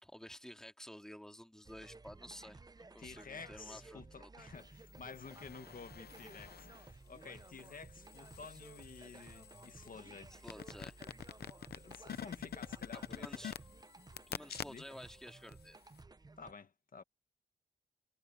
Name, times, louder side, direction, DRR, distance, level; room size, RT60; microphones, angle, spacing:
voice 1, 0.0-2.6 2.9-4.3 10.3-11.0 12.9-13.5 14.3-15.8, equal, 5° left, 2.3 m, -52 dB
sound 1, 1.6-16.5, right 3 dB, 25° right, 0.7 m, -56 dB
voice 2, 3.0-10.3 11.7-13.5 14.6-14.9 16.4-17.0, left 5 dB, 55° left, 1.7 m, -52 dB
sound 2, 4.9-6.9 7.4-15.1 15.5-15.6, left 9 dB, 70° left, 0.7 m, -48 dB
cardioid pair, 60°, 17 cm